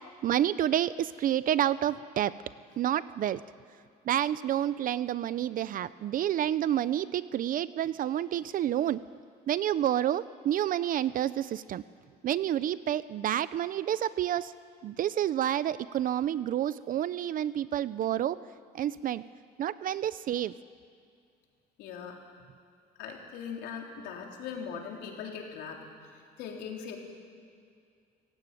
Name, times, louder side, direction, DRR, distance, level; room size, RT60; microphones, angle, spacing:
voice 1, 0.2-2.4 2.8-3.4 4.1-9.0 9.5-11.8 12.2-14.5 14.8-18.4 18.7-19.2 19.6-20.5, right 11 dB, 55° right, 16 dB, 0.6 m, -29 dB
voice 2, 21.8-22.2 23.0-27.0, left 6 dB, 90° left, 1 dB, 3.9 m, -40 dB
26.0 x 16.5 x 9.2 m, 2.3 s
cardioid pair, 110°, 17 cm